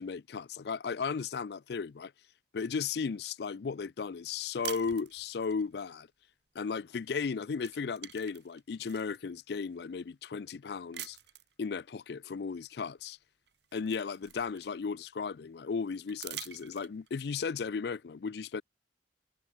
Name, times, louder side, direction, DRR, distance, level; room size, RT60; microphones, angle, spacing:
voice 1, 0.0-2.1 2.5-6.1 6.5-11.2 11.6-13.2 13.7-18.6, left 5 dB, 60° left, 0.4 m, -35 dB
sound 1, 4.6-5.6 7.0-7.3 7.6-9.2 9.8-9.9 10.9-11.5 13.0-13.1 13.5-15.0 16.1-17.2, right 12 dB, 70° right, 2.9 m, -45 dB
head